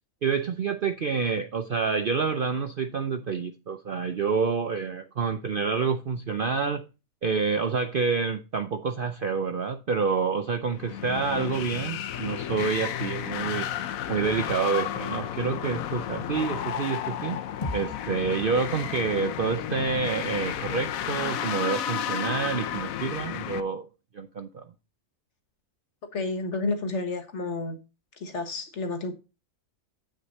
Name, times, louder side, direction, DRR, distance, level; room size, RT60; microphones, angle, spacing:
voice 1, 0.2-6.8 7.2-13.7 14.1-17.4 17.7-23.9 24.1-24.7, right 5 dB, 55° right, 0.6 m, -28 dB
sound 1, 10.7-23.6, left 10 dB, 70° left, 1.0 m, -32 dB
sound 2, 17.6-22.0, left 2 dB, 30° left, 1.1 m, -42 dB
voice 2, 26.1-27.8 28.2-29.1, left 3 dB, 55° left, 1.5 m, -30 dB
8.2 x 6.3 x 4.1 m
omnidirectional pair, 1.5 m